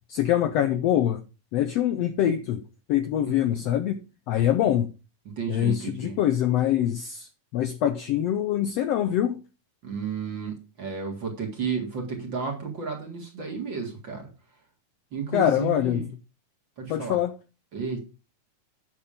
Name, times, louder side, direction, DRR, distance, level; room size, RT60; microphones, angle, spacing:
voice 1, 0.1-1.2 1.5-2.6 2.9-4.0 4.3-4.9 5.5-9.4 15.3-16.0 16.9-17.3, left 11 dB, 80° left, 1.5 m, -24 dB
voice 2, 5.4-6.2 9.8-14.3 15.1-16.1 16.8-17.2 17.7-18.0, right 5 dB, 40° right, 2.2 m, -32 dB
8.7 x 6.0 x 5.0 m
omnidirectional pair, 3.6 m